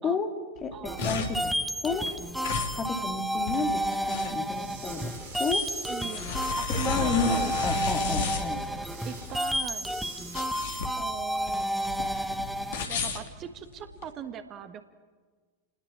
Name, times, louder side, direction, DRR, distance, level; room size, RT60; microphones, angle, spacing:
sound 1, 0.6-14.1, left 5 dB, 55° left, 2.8 m, -34 dB
voice 1, 0.7-1.0 5.9-7.5 9.0-9.9 10.9-11.7 12.9-14.9, right 9 dB, 30° right, 9 dB, 1.5 m, -40 dB
sound 2, 0.8-12.8, equal, ahead, 1.2 m, -31 dB
voice 2, 2.7-3.8 4.1-5.1 5.4-5.6 6.7-8.6, left 4 dB, 25° left, 4 dB, 2.9 m, -30 dB
sound 3, 4.3-11.6, right 4 dB, 50° right, 7.5 m, -47 dB
30.0 x 20.0 x 7.4 m, 1.5 s
figure-of-eight pair, 90°, 0 cm